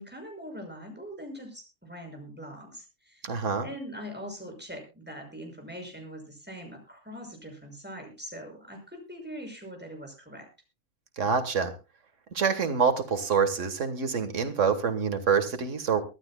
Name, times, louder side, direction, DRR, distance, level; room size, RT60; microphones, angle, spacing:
voice 1, 0.0-10.5, equal, 10° right, 2 dB, 6.2 m, -42 dB
voice 2, 3.2-3.7 11.2-11.7 12.3-16.0, right 6 dB, 85° right, 8 dB, 1.8 m, -26 dB
24.0 x 12.0 x 2.3 m, 0.30 s
omnidirectional pair, 1.3 m